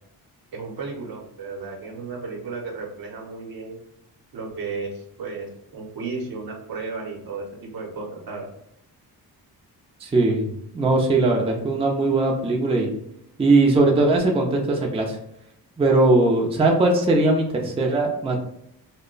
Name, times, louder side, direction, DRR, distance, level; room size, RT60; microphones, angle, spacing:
voice 1, 0.5-3.8 4.3-8.5, right 4 dB, 65° right, 0 dB, 0.8 m, -34 dB
voice 2, 10.0-10.5 10.7-12.9 13.4-15.2 15.8-18.4, right 2 dB, 15° right, 0 dB, 0.5 m, -19 dB
2.3 x 2.1 x 3.7 m, 0.77 s
cardioid pair, 95°, 39 cm